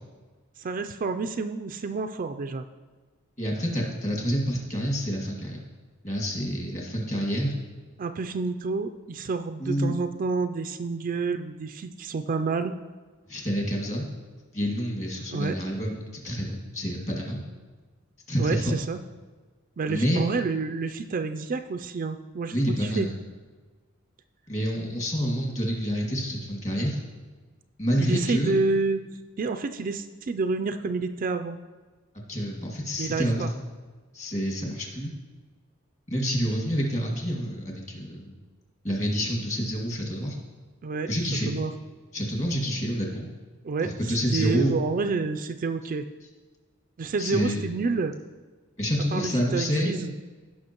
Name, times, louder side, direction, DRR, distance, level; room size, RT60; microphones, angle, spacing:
voice 1, 0.6-2.6 8.0-12.7 15.3-15.5 18.4-19.0 19.8-23.1 28.0-29.0 29.4-31.6 33.0-33.5 40.8-41.1 41.5-41.7 43.6-46.0 47.0-48.2 49.1-50.1, right 4 dB, 40° right, 8 dB, 0.4 m, -29 dB
voice 2, 3.4-5.6 6.0-7.5 9.6-9.9 13.3-14.1 14.5-17.4 18.3-18.8 19.9-20.3 22.5-23.2 24.5-27.0 27.8-28.5 32.3-33.5 34.1-35.1 36.1-38.3 38.8-40.4 41.1-41.5 42.1-43.3 43.8-44.7 47.2-47.6 48.8-50.0, equal, 35° left, -1 dB, 2.1 m, -28 dB
16.0 x 5.8 x 3.0 m, 1.4 s
head